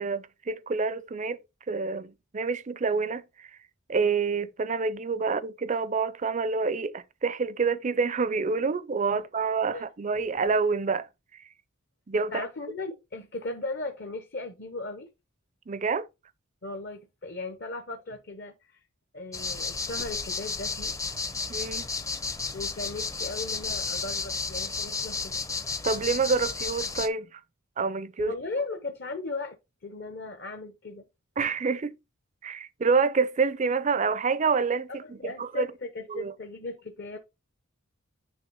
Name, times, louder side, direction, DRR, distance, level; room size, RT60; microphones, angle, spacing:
voice 1, 0.0-1.4 1.7-3.5 3.9-11.1 12.1-12.4 15.7-16.1 21.5-21.9 25.8-27.4 27.8-28.3 31.4-32.0 32.4-35.7 36.1-36.3, right 4 dB, 35° right, 0.4 m, -27 dB
voice 2, 12.3-15.1 16.6-18.8 19.1-20.9 22.5-25.4 28.2-29.6 29.8-31.1 34.9-37.2, left 3 dB, 50° left, 0.8 m, -37 dB
sound 1, 19.3-27.1, left 4 dB, 15° left, 0.6 m, -32 dB
9.6 x 3.3 x 4.5 m
head